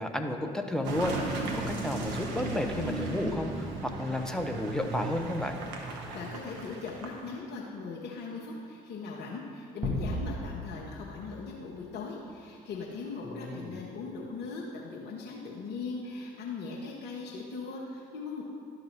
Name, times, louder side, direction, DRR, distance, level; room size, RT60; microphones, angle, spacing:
voice 1, 0.0-5.6 13.2-13.8, left 1 dB, 5° left, 4 dB, 0.8 m, -32 dB
Car passing by / Engine, 0.8-7.4, right 2 dB, 60° right, 1.0 m, -36 dB
voice 2, 6.1-18.4, left 4 dB, 55° left, -3 dB, 1.0 m, -39 dB
sound 1, 9.8-12.4, left 1 dB, 15° right, 1.5 m, -36 dB
11.5 x 4.0 x 5.4 m, 2.7 s
figure-of-eight pair, 50°, 20 cm